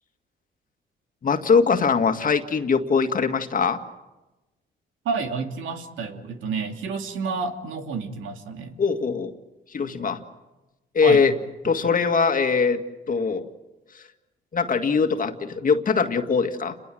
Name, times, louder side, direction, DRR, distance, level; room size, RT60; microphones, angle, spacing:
voice 1, 1.2-3.8 8.8-9.3 9.7-10.2 10.9-11.3 11.6-12.8 13.1-13.5 14.5-16.8, left 5 dB, 45° left, 7 dB, 2.1 m, -21 dB
voice 2, 5.0-8.8 11.0-11.2, right 4 dB, 80° right, 5 dB, 2.7 m, -30 dB
29.5 x 22.5 x 7.8 m, 1.1 s
cardioid pair, 90°, 20 cm